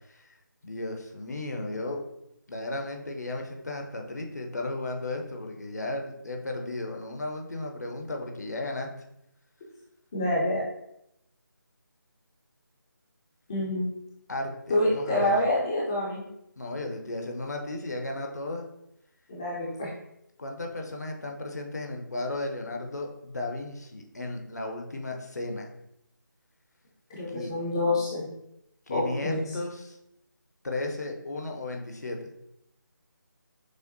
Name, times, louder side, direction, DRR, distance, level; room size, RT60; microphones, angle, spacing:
voice 1, 0.6-2.0 2.5-8.9 14.3-15.4 16.6-18.7 20.4-25.7 27.3-27.5 28.9-30.0 30.6-32.3, left 2 dB, 55° left, 2 dB, 0.7 m, -34 dB
voice 2, 10.1-10.6 13.5-13.9 14.7-16.2 19.3-19.9 27.1-28.3 28.9-29.6, left 1 dB, 15° left, -6 dB, 0.5 m, -27 dB
6.2 x 2.1 x 2.6 m, 0.80 s
figure-of-eight pair, 160°, 11 cm